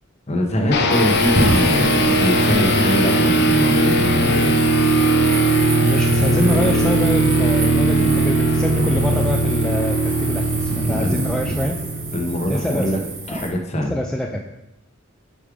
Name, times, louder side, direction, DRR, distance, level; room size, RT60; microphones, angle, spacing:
voice 1, 0.3-4.7 10.9-11.2 12.1-13.0 13.3-13.9, equal, 30° left, 3 dB, 0.9 m, -23 dB
sound 1, 0.7-12.9, right 1 dB, 50° left, 0.5 m, -19 dB
sound 2, 0.9-13.5, right 2 dB, 65° right, 1.7 m, -28 dB
voice 2, 5.8-11.8 12.5-14.4, equal, 5° left, 0 dB, 0.3 m, -25 dB
5.3 x 4.9 x 4.9 m, 0.93 s
head